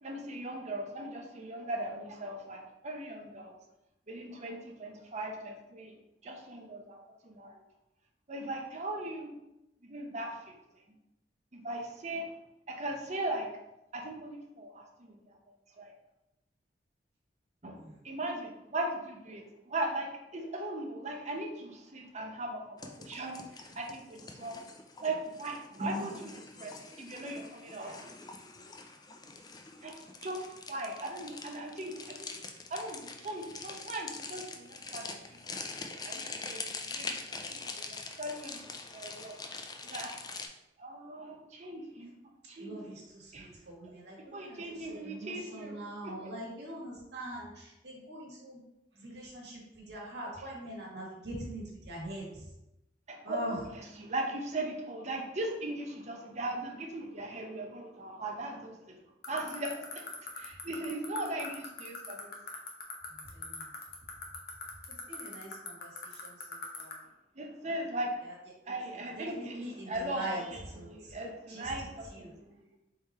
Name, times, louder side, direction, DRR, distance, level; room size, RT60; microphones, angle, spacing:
voice 1, 0.0-3.5 4.1-5.9 6.2-7.0 7.2-7.6 8.3-9.3 9.8-10.5 11.5-12.3 12.7-13.6 13.9-15.2 15.8-15.9 17.6-24.6 25.0-26.7 27.0-28.1 29.8-30.0 30.2-30.4 30.7-32.3 32.7-35.2 35.8-36.2 36.5-37.2 37.5-38.6 38.9-39.4 39.8-40.1 40.8-42.1 42.5-43.0 43.3-43.5 44.3-46.3 53.1-59.0 59.3-62.3 67.4-68.2 68.7-72.6, right 1 dB, 40° right, 2 dB, 0.7 m, -39 dB
sound 1, 22.8-40.5, left 4 dB, 20° left, 0.4 m, -44 dB
voice 2, 42.6-44.6 44.9-48.6 48.9-52.5 53.2-53.6 63.3-63.6 65.1-67.0 69.2-70.4 70.7-71.2 71.5-71.7 72.1-72.3, right 1 dB, 65° right, -4 dB, 1.6 m, -43 dB
sound 2, 59.2-66.9, left 9 dB, 60° left, 0.8 m, -39 dB
3.7 x 3.1 x 4.2 m, 0.89 s
head